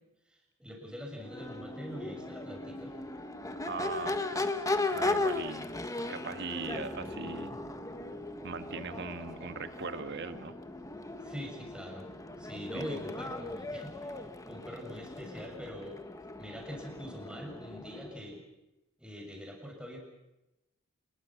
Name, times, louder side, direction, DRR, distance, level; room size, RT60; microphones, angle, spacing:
voice 1, 0.3-2.9 11.2-12.1 12.4-16.0 16.4-18.4 19.0-20.0, equal, 5° right, 1 dB, 6.8 m, -44 dB
Crowd / Race car auto racing / Accelerating revving vroom, 1.2-18.3, left 2 dB, 15° left, 1.5 m, -37 dB
voice 2, 3.6-4.5 4.9-5.7 6.1-7.6 8.4-10.5 12.7-12.9, right 4 dB, 55° right, 9 dB, 1.7 m, -39 dB
28.5 x 22.0 x 6.2 m, 0.96 s
head